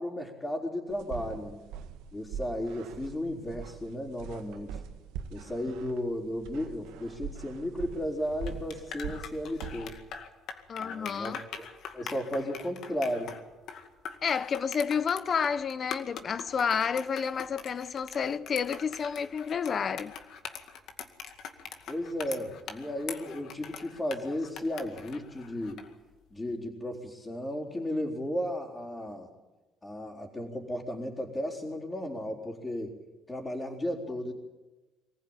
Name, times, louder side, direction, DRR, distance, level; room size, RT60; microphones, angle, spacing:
voice 1, 0.0-1.6 2.1-4.8 5.3-10.0 10.8-11.7 11.9-13.3 21.9-25.8 26.3-29.3 29.8-32.9 33.3-34.3, left 1 dB, 15° left, 4.1 m, -34 dB
sound 1, 0.9-10.0, right 7 dB, 90° right, 1.6 m, -43 dB
sound 2, 8.2-25.9, left 7 dB, 65° left, 2.1 m, -43 dB
voice 2, 10.7-11.4 14.2-20.1, left 6 dB, 45° left, 0.9 m, -30 dB
24.0 x 15.5 x 9.0 m
cardioid pair, 100°, 0 cm